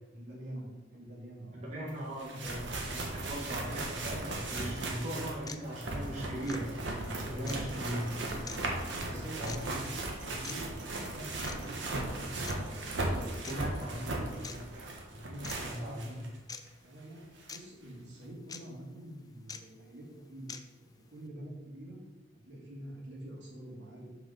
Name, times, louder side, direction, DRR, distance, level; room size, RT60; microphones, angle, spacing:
voice 1, 0.1-1.9 2.2-2.5 7.7-8.2 8.9-10.8 11.1-12.8 13.1-13.5 13.7-14.5 15.2-16.2 16.8-17.2 17.5-20.5 20.8-22.0 22.4-24.1, right 1 dB, 70° right, -4 dB, 2.6 m, -46 dB
voice 2, 1.5-3.0 3.3-6.7 7.0-8.0 9.1-9.6 13.5-14.0 14.4-14.8 15.6-16.3, equal, 40° right, -6 dB, 1.6 m, -39 dB
sound 1, 1.9-2.0 2.2-16.3 16.7-16.8 17.5-17.6, right 2 dB, 85° right, 1.4 m, -37 dB
sound 2, 5.5-5.6 6.4-6.6 7.5-7.6 8.5-8.6 9.5-9.6 10.4-10.6 11.4-11.6 12.4-12.6 13.4-13.5 14.4-14.6 15.4-15.6 16.5-16.6 17.5-17.6 18.5-18.6 19.5-19.6 20.5-20.6, left 6 dB, 20° left, 0.4 m, -43 dB
6.5 x 4.8 x 5.7 m, 1.1 s
head